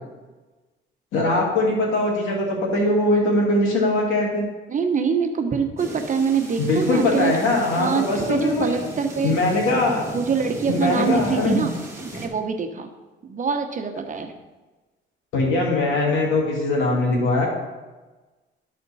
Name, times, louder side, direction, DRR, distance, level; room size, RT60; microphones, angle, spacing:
voice 1, 1.1-4.5 6.6-8.7 9.2-10.1 10.7-11.7 15.3-17.5, left 2 dB, 90° left, -1 dB, 2.3 m, -21 dB
voice 2, 4.7-7.3 7.7-9.4 10.1-11.8 12.0-12.9 13.2-14.3, right 5 dB, 40° right, 5 dB, 1.0 m, -24 dB
sound 1, 5.8-12.3, right 1 dB, 15° right, 1.6 m, -35 dB
12.0 x 4.4 x 4.1 m, 1.2 s
cardioid pair, 90°, 20 cm